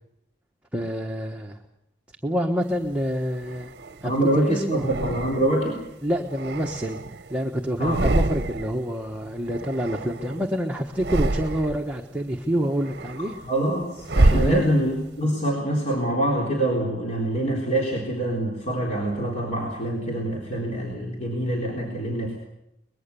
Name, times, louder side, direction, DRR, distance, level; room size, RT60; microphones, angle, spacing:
voice 1, 0.7-1.6 2.2-3.7 4.0-4.9 6.0-7.0 7.3-13.4 14.3-14.6, equal, 5° right, 1 dB, 1.3 m, -27 dB
sound 1, 2.8-4.1 4.7-5.7 6.2-7.4 7.7-8.8 9.1-10.5 10.9-11.9 12.4-15.1, right 2 dB, 55° right, 0.9 m, -27 dB
voice 2, 4.0-5.8 7.8-8.2 13.2-22.4, right 1 dB, 40° left, -2 dB, 3.8 m, -25 dB
24.0 x 20.5 x 7.0 m, 0.85 s
head